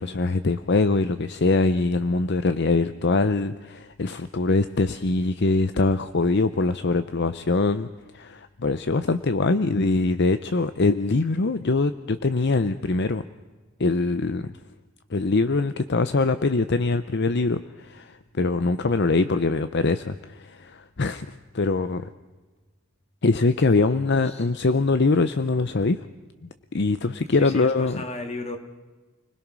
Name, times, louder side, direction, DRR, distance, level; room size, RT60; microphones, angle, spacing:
voice 1, 0.0-7.9 8.1-13.2 13.8-14.5 15.1-21.3 21.5-22.1 23.2-26.0 26.4-28.0, left 3 dB, 50° left, 11 dB, 0.7 m, -23 dB
voice 2, 24.0-24.8 27.3-28.6, left 2 dB, 30° left, 5 dB, 2.5 m, -36 dB
29.5 x 20.5 x 6.2 m, 1.3 s
head